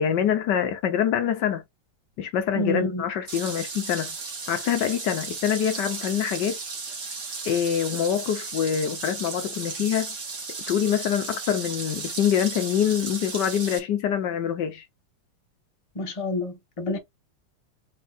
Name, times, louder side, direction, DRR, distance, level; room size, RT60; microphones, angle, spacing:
voice 1, 0.0-1.6 2.2-4.1 4.5-6.6 7.4-10.1 10.7-14.8, left 9 dB, 70° left, 1.3 m, -25 dB
voice 2, 2.5-3.0 15.9-17.0, left 1 dB, 25° left, 0.9 m, -28 dB
sound 1, 3.3-13.8, right 4 dB, 50° right, 1.9 m, -35 dB
4.5 x 3.0 x 3.9 m
omnidirectional pair, 2.1 m